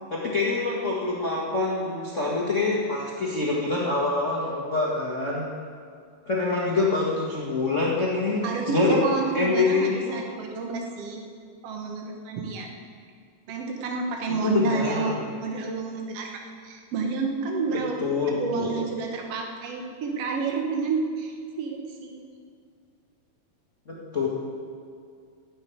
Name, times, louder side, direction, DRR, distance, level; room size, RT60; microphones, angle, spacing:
voice 1, 0.1-5.5 6.2-9.0 9.3-10.2 14.3-15.2 17.7-18.7 23.9-24.3, left 3 dB, 90° left, -4 dB, 0.6 m, -26 dB
voice 2, 8.4-11.2 11.6-12.7 13.5-17.9 18.4-22.3, right 4 dB, 80° right, 2 dB, 1.3 m, -29 dB
13.5 x 7.8 x 9.4 m, 2.3 s
omnidirectional pair, 4.6 m